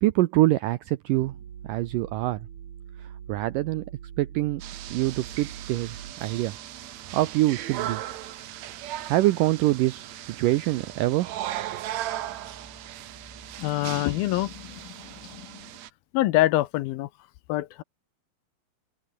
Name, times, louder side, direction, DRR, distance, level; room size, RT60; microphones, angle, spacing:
voice 1, 0.0-1.3 1.7-2.4 3.3-3.9 4.2-4.6 4.9-5.9 6.2-6.6 7.1-8.0 9.1-11.3, right 17 dB, 90° right, 1.9 m, -24 dB
sound 1, 1.1-6.1, right 9 dB, 50° right, 3.2 m, -43 dB
sound 2, 4.6-15.9, right 13 dB, 75° right, 1.6 m, -37 dB
sound 3, 4.8-15.4, right 1 dB, 5° right, 6.9 m, -55 dB
voice 2, 13.6-14.5 16.1-17.1 17.5-17.8, left 16 dB, 75° left, 2.4 m, -24 dB
open air
omnidirectional pair, 4.7 m